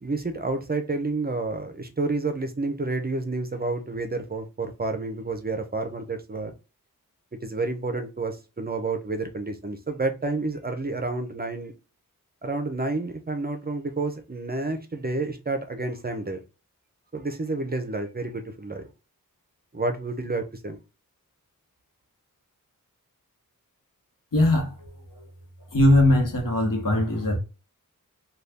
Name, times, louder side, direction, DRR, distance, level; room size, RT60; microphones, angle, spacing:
voice 1, 0.0-6.5 7.4-11.7 12.4-16.4 17.1-18.8 19.7-20.8, right 3 dB, 30° right, 0.5 m, -29 dB
voice 2, 24.3-25.2 25.7-27.4, left 1 dB, 70° left, 1.1 m, -21 dB
2.6 x 2.3 x 3.4 m
wide cardioid pair, 65°, 34 cm